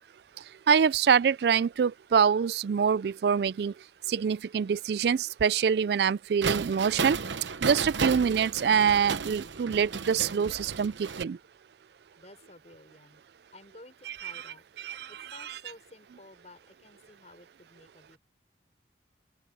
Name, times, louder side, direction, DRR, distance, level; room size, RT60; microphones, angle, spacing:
voice 1, 0.7-3.7 4.1-7.2 7.6-11.4 14.8-15.1, right 7 dB, 65° right, 0.3 m, -25 dB
sound 1, 6.4-11.2, right 5 dB, 90° right, 0.9 m, -33 dB
voice 2, 12.1-13.2 13.5-18.2, left 2 dB, 40° left, 6.4 m, -53 dB
open air
head